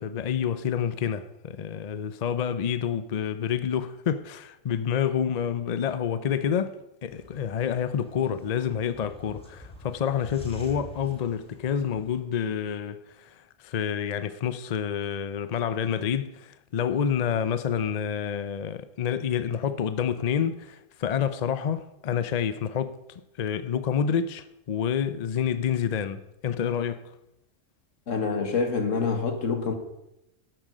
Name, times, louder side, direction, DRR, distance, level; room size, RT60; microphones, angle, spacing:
voice 1, 0.0-13.3 13.6-23.0 23.4-27.1, left 8 dB, 50° left, 0.5 m, -28 dB
sound 1, 7.1-12.2, left 1 dB, 5° left, 1.8 m, -46 dB
voice 2, 28.1-29.7, left 5 dB, 75° left, 1.8 m, -26 dB
12.0 x 9.0 x 5.2 m
omnidirectional pair, 1.3 m